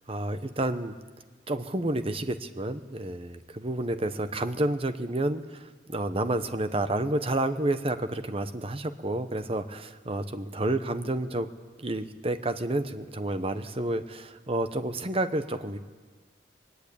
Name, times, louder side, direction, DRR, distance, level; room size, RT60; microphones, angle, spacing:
voice 1, 0.1-1.0 1.5-11.5 11.8-15.8, right 1 dB, 30° right, 10 dB, 1.0 m, -30 dB
21.5 x 19.5 x 8.6 m, 1.4 s
head